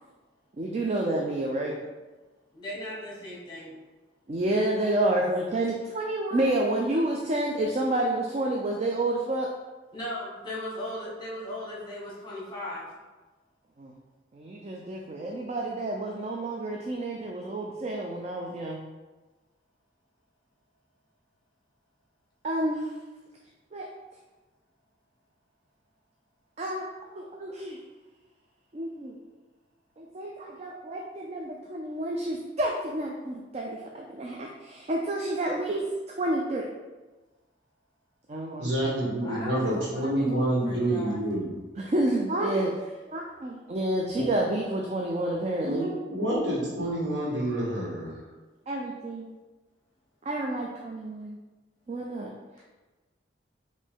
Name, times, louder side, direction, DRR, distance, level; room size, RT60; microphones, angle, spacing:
voice 1, 0.6-1.8 4.3-9.5 13.8-13.9 14.3-18.8 22.4-22.9 23.7-23.9 26.6-27.8 28.7-29.1 30.0-35.8 36.2-36.6 38.3-39.0 39.2-39.3 41.8-45.9 48.7-49.3 50.2-51.4 51.9-52.3, right 1 dB, 35° right, 0 dB, 0.4 m, -29 dB
voice 2, 2.5-3.8 9.9-12.9 30.5-30.6 39.2-41.2, left 1 dB, 25° left, -6 dB, 1.1 m, -38 dB
voice 3, 38.6-41.5 44.2-44.3 45.6-48.2, right 1 dB, 75° right, -6 dB, 1.5 m, -28 dB
5.1 x 2.6 x 3.6 m, 1.2 s
head